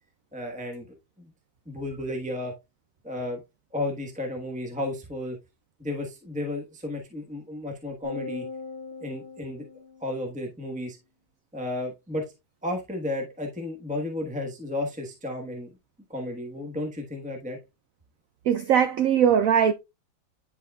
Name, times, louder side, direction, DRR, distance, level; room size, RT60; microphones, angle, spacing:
voice 1, 0.3-0.8 1.2-1.3 1.7-2.5 3.0-3.4 3.7-5.4 5.8-8.4 9.0-9.6 10.0-11.0 11.5-12.2 12.6-15.7 16.1-17.6, left 1 dB, 5° right, 0.9 m, -33 dB
sound 1, 8.0-10.6, left 4 dB, 60° right, 2.4 m, -40 dB
voice 2, 18.5-19.7, right 8 dB, 80° right, 0.7 m, -20 dB
10.5 x 4.6 x 2.3 m
omnidirectional pair, 2.0 m